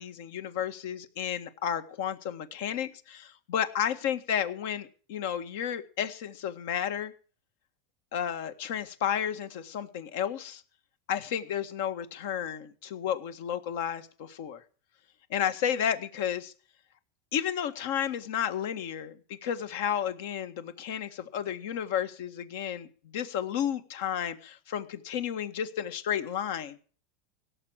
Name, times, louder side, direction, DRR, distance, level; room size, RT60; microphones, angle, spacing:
voice 1, 0.0-7.1 8.1-10.6 11.1-14.6 15.3-16.5 17.3-22.9 23.1-27.0, left 9 dB, 65° left, 11 dB, 1.6 m, -32 dB
17.0 x 6.8 x 7.5 m, 0.40 s
supercardioid pair, 140°, 0 cm